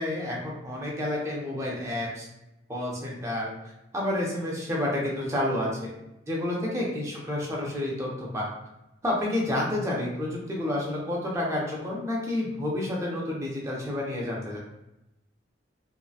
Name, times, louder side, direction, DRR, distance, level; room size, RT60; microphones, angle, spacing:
voice 1, 0.0-2.3 2.7-3.5 3.9-5.9 6.3-8.5 9.0-14.6, left 1 dB, 15° right, -4 dB, 0.5 m, -29 dB
2.6 x 2.1 x 2.3 m, 0.90 s
head